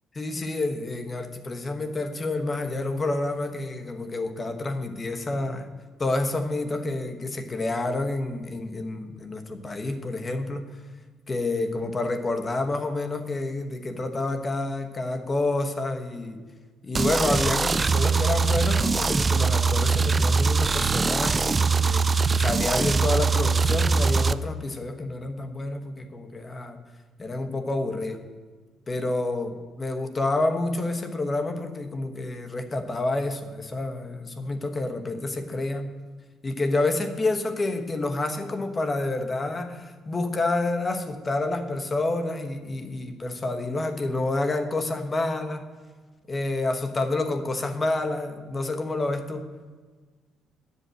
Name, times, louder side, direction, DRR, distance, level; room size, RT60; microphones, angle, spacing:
voice 1, 0.1-5.7 6.0-10.8 11.3-16.4 16.8-22.1 22.4-26.8 27.2-28.2 28.9-35.9 36.4-45.6 46.3-49.5, left 2 dB, 30° left, 6 dB, 1.2 m, -28 dB
sound 1, 16.9-24.3, right 4 dB, 35° right, 0.4 m, -22 dB
9.5 x 5.6 x 7.7 m, 1.4 s
supercardioid pair, 65°, 0 cm